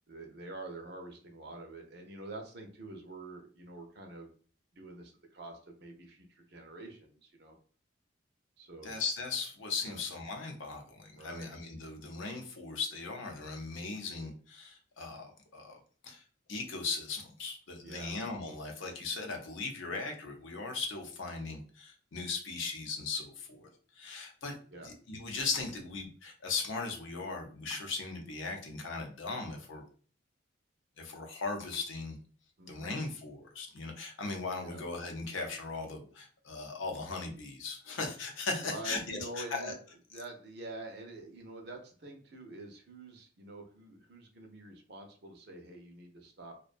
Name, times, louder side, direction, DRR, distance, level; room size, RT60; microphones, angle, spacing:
voice 1, 0.1-4.3 4.7-7.5 8.6-8.9 9.9-10.0 11.1-11.5 17.8-18.1 24.7-24.9 32.6-33.0 34.6-34.8 38.6-39.8 40.1-46.6, right 2 dB, 55° right, 3 dB, 0.5 m, -46 dB
voice 2, 8.8-16.2 16.5-23.7 24.0-24.6 24.8-29.8 31.0-32.2 32.7-39.7, left 4 dB, 75° left, 3 dB, 0.6 m, -38 dB
2.5 x 2.2 x 2.4 m, 0.42 s
head